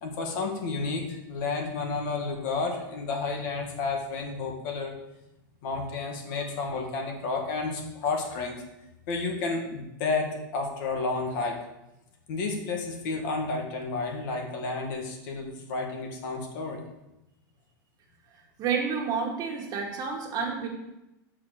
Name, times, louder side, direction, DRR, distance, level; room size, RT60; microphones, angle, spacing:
voice 1, 0.0-4.9 5.6-8.6 9.1-11.6 12.3-16.8, left 3 dB, 60° left, 2 dB, 1.8 m, -31 dB
voice 2, 18.6-20.7, right 5 dB, 35° right, 0 dB, 1.5 m, -29 dB
6.4 x 4.3 x 6.4 m, 0.92 s
supercardioid pair, 145°, 11 cm